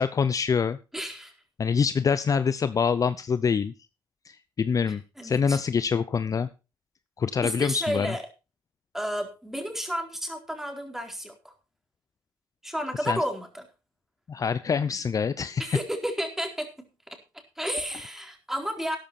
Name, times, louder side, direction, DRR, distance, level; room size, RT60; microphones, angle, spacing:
voice 1, 0.0-0.8 1.6-3.7 4.3-6.5 7.2-8.1 13.1-13.2 14.3-15.8, left 6 dB, 40° left, 14 dB, 0.7 m, -25 dB
voice 2, 0.9-1.3 5.2-5.6 7.4-8.2 8.9-11.5 12.6-13.6 15.6-16.7 17.6-19.0, equal, 5° right, 4 dB, 4.1 m, -32 dB
13.0 x 10.5 x 4.3 m, 0.30 s
supercardioid pair, 70°, 9 cm